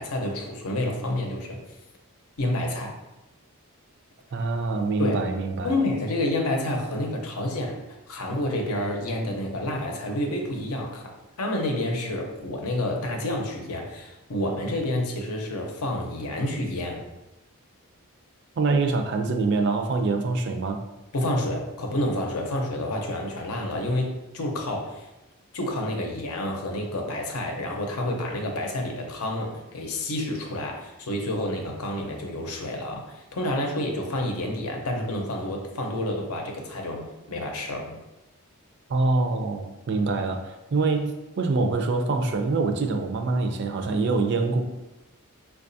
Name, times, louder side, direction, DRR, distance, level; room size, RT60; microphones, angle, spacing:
voice 1, 0.0-1.6 2.4-3.0 5.0-5.2 5.6-11.0 11.4-17.0 21.1-25.1 25.5-38.0, left 1 dB, 90° left, 1 dB, 0.7 m, -29 dB
voice 2, 4.3-5.7 18.6-20.8 38.9-44.6, right 3 dB, 50° right, 5 dB, 0.4 m, -25 dB
4.8 x 2.3 x 2.6 m, 1.0 s
head